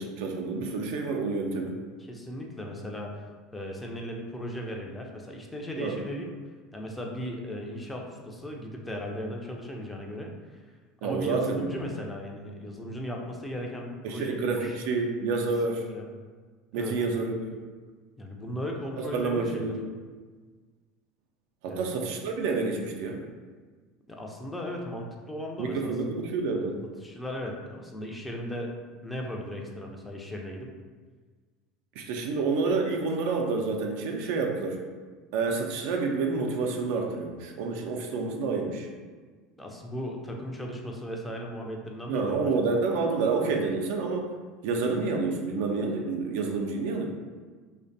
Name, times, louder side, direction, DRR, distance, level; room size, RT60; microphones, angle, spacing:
voice 1, 0.0-1.8 5.8-6.0 11.0-11.8 14.0-15.8 16.7-17.6 19.1-19.8 21.6-23.2 25.6-26.8 32.0-34.8 35.3-38.9 42.1-44.3 44.6-47.1, right 4 dB, 70° right, 2 dB, 0.3 m, -28 dB
voice 2, 2.1-3.2 3.5-6.3 6.7-10.6 11.0-14.8 15.6-16.0 16.7-17.0 18.2-19.7 21.7-21.9 24.1-25.9 27.0-28.7 29.0-30.7 39.6-42.7, equal, 10° left, 0 dB, 0.4 m, -37 dB
2.5 x 2.1 x 2.5 m, 1.4 s
hypercardioid pair, 80°, 0 cm